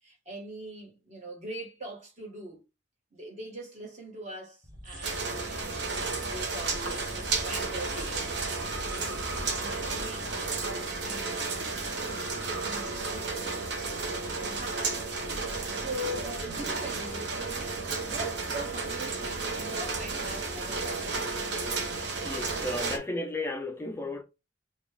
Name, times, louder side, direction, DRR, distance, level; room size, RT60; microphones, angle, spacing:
voice 1, 0.0-2.6 3.1-5.8 6.2-10.3 10.6-11.5 12.6-13.4 13.9-15.0 15.7-21.2, right 1 dB, 40° right, 1.4 m, -42 dB
sound 1, 4.6-11.5, equal, 25° right, 1.0 m, -45 dB
sound 2, 5.0-23.0, right 3 dB, 65° right, 0.8 m, -33 dB
voice 2, 22.2-24.2, left 1 dB, 15° left, 0.3 m, -34 dB
4.0 x 2.3 x 3.3 m
head